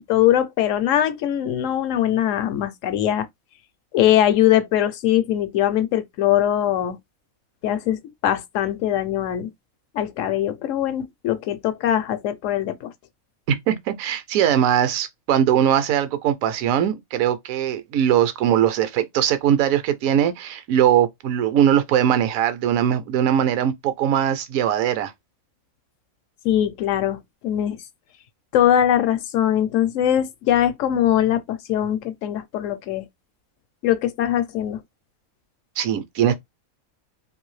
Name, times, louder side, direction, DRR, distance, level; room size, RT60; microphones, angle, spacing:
voice 1, 0.1-3.3 3.9-7.0 7.6-9.5 9.9-12.9 26.4-27.8 28.5-33.0 33.8-34.8, left 11 dB, 70° left, 0.9 m, -21 dB
voice 2, 13.5-25.1 35.8-36.4, right 10 dB, 75° right, 1.0 m, -20 dB
2.7 x 2.6 x 3.1 m
omnidirectional pair, 1.5 m